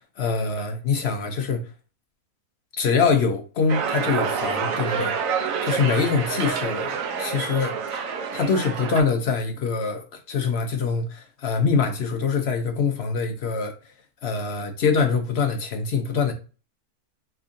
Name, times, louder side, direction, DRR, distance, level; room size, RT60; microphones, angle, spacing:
voice 1, 0.2-1.7 2.8-5.1 5.6-8.0 8.3-13.7 14.2-16.3, left 5 dB, 60° left, 0.7 m, -24 dB
sound 1, 3.7-9.0, right 6 dB, 65° right, 1.0 m, -27 dB
3.5 x 3.4 x 2.6 m
omnidirectional pair, 1.6 m